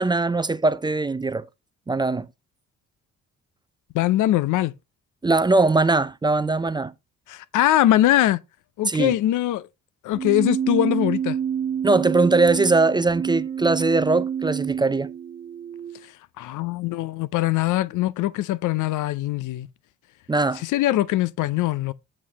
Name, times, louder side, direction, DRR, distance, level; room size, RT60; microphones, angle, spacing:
voice 1, 0.0-1.5 1.9-2.3 5.2-6.9 8.9-9.2 11.8-15.1 20.3-20.6, right 3 dB, 15° right, 0.4 m, -21 dB
voice 2, 3.9-4.7 7.3-8.4 8.8-9.7 10.0-11.4 16.4-19.7 20.6-21.9, left 14 dB, 80° left, 0.6 m, -22 dB
Keyboard (musical), 10.1-16.1, right 8 dB, 30° right, 1.1 m, -28 dB
8.5 x 7.4 x 2.9 m
cardioid pair, 90°, 30 cm